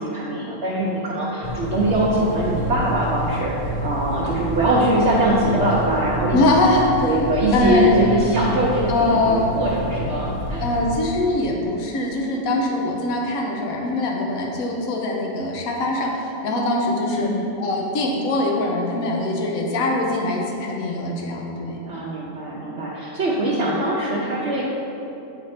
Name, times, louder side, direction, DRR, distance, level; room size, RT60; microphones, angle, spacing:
voice 1, 0.0-6.4 7.0-10.6 17.1-17.5 21.9-24.6, right 1 dB, 55° right, -5 dB, 0.9 m, -22 dB
sound 1, 1.4-11.0, right 1 dB, 55° left, 0.9 m, -29 dB
voice 2, 6.3-7.1 7.5-8.0 8.9-9.4 10.6-17.3 17.6-21.8, left 2 dB, 75° left, -1 dB, 1.1 m, -22 dB
8.8 x 3.5 x 4.2 m, 2.9 s
omnidirectional pair, 1.5 m